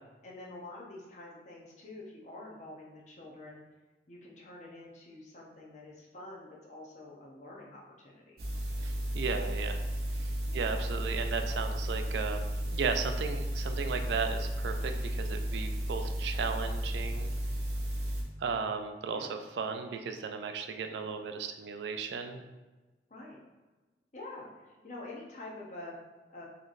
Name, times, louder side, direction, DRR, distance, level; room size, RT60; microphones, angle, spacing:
voice 1, 0.2-3.6 4.1-8.4 10.5-10.8 19.1-19.3 23.1-23.4 24.1-26.0 26.3-26.4, left 2 dB, 40° left, -3 dB, 0.7 m, -47 dB
sound 1, 8.4-18.2, equal, 60° right, 0.7 m, -33 dB
voice 2, 8.8-9.8 10.2-17.3 18.4-22.4, right 5 dB, 75° right, 7 dB, 0.3 m, -35 dB
4.0 x 3.1 x 2.5 m, 1.2 s
head